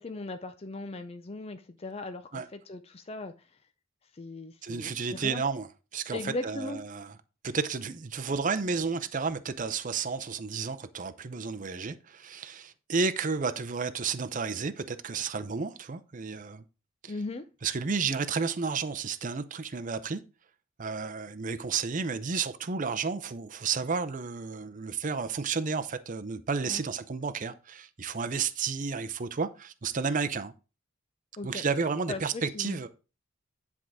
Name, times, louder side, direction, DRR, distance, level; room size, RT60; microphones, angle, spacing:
voice 1, 0.0-3.5 4.1-5.4 6.1-6.8 17.1-17.5 26.6-26.8 31.4-31.6 32.1-32.8, left 2 dB, 30° left, 0.5 m, -38 dB
voice 2, 4.6-5.7 5.9-7.2 7.4-16.6 17.0-17.1 17.6-20.2 20.8-30.5 31.4-32.9, right 5 dB, 40° right, 0.6 m, -32 dB
10.0 x 3.6 x 6.2 m
head